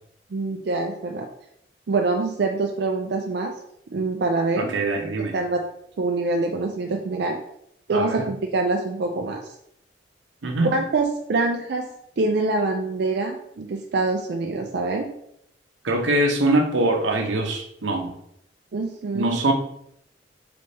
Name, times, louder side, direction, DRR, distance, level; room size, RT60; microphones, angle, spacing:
voice 1, 0.3-1.3 1.9-3.5 3.9-4.8 5.2-5.6 6.0-7.4 7.9-9.5 10.6-11.8 12.2-15.1 18.7-19.4, right 3 dB, 60° right, 2 dB, 0.4 m, -25 dB
voice 2, 4.6-5.4 7.9-8.2 10.4-10.7 15.8-18.1 19.1-19.5, right 2 dB, 85° right, 3 dB, 0.8 m, -23 dB
4.0 x 3.3 x 3.3 m, 0.73 s
head